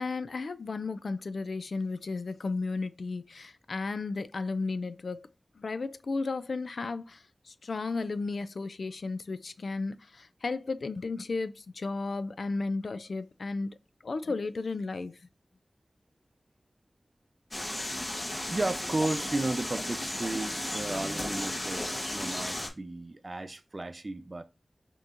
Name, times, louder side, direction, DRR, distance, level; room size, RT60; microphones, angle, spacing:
voice 1, 0.0-5.3 5.6-13.7 14.0-15.2, left 3 dB, 80° left, 0.3 m, -34 dB
sound 1, 17.5-22.7, left 1 dB, 40° left, 1.2 m, -34 dB
voice 2, 18.5-24.4, right 2 dB, 45° right, 0.6 m, -34 dB
5.6 x 3.0 x 2.5 m
wide cardioid pair, 65°, 0 cm